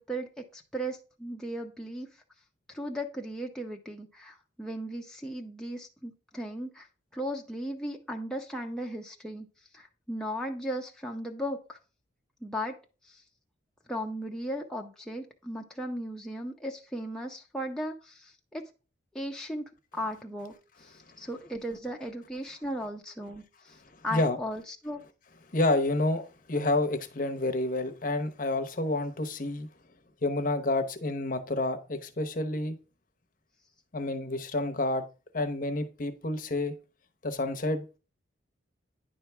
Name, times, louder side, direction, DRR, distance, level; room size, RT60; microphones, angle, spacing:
voice 1, 0.0-2.1 2.7-6.9 7.1-9.5 9.7-11.8 12.4-12.7 13.1-13.2 13.9-18.6 19.1-23.8 24.0-25.0, equal, 5° left, 0.7 m, -36 dB
voice 2, 25.5-26.2 26.5-29.7 30.2-32.8 33.9-35.1 35.3-36.7 37.2-37.8, left 2 dB, 45° left, 0.8 m, -29 dB
10.0 x 3.4 x 5.8 m
head